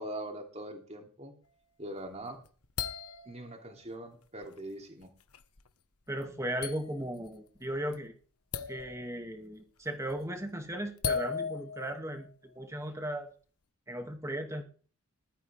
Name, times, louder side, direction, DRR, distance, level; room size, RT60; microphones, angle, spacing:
voice 1, 0.0-1.3 1.8-2.4 3.2-5.1, right 1 dB, 30° right, 2 dB, 3.1 m, -42 dB
sound 1, 2.1-3.8 4.4-4.6 5.0-5.7 6.2-6.3 6.6-7.3 7.5-7.9 8.5-9.3 9.9-10.2 11.0-12.3, left 6 dB, 85° left, 1.4 m, -37 dB
voice 2, 6.1-8.1 8.7-12.3 12.6-13.3 13.9-14.6, right 1 dB, 15° right, 4 dB, 2.4 m, -36 dB
20.5 x 13.0 x 3.6 m, 0.41 s
head